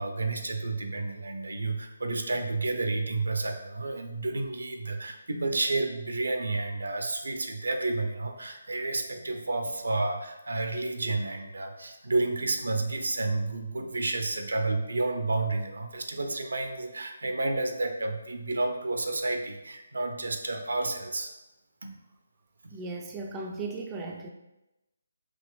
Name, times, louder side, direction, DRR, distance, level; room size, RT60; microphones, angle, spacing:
voice 1, 0.0-21.3 21.8-21.9 22.6-22.7, right 2 dB, 70° right, 4 dB, 0.5 m, -30 dB
voice 2, 22.7-24.3, right 3 dB, 15° right, 0 dB, 0.4 m, -36 dB
5.1 x 3.0 x 2.4 m, 0.96 s
figure-of-eight pair, 150°, 0 cm